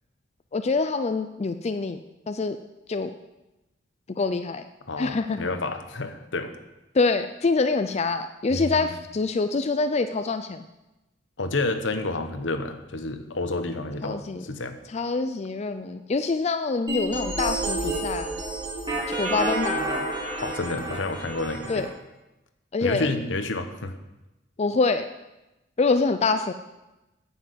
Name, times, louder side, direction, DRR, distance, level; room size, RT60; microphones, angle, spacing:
voice 1, 0.5-2.0 2.3-2.6 2.9-3.1 4.2-4.6 5.0-5.4 6.9-10.7 14.0-14.4 14.9-18.4 19.1-20.1 21.7-21.9 22.7-23.1 24.6-25.1 25.8-26.5, left 3 dB, 35° left, 9 dB, 0.4 m, -25 dB
voice 2, 4.9-6.5 8.5-8.9 11.4-14.8 20.4-21.9 22.8-23.9, left 2 dB, 75° left, 8 dB, 1.0 m, -29 dB
sound 1, 16.9-21.9, right 1 dB, 25° right, 2.7 m, -29 dB
9.6 x 7.1 x 8.1 m, 1.0 s
head